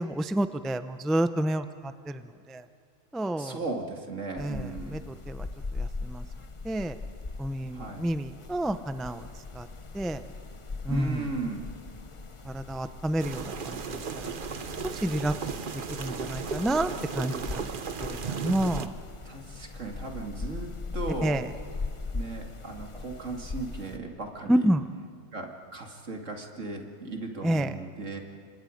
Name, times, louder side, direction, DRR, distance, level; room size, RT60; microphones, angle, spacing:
voice 1, 0.0-2.6 3.1-3.6 4.4-5.0 5.3-5.5 5.7-6.2 6.6-7.0 7.4-9.3 9.5-9.7 9.9-10.2 10.8-11.2 12.4-14.3 14.8-15.3 15.9-17.7 18.0-18.9 21.2-21.5 24.5-24.9 27.4-27.7, right 1 dB, ahead, 10 dB, 0.4 m, -29 dB
voice 2, 3.4-5.0 7.7-8.1 10.9-11.7 19.2-21.4 22.1-24.7 25.3-28.2, right 3 dB, 75° right, 2 dB, 2.7 m, -36 dB
sound 1, 4.4-24.0, left 3 dB, 30° left, 0.8 m, -40 dB
sound 2, 13.2-18.9, right 6 dB, 45° right, 1.0 m, -35 dB
29.5 x 25.5 x 5.2 m, 2.5 s
omnidirectional pair, 1.3 m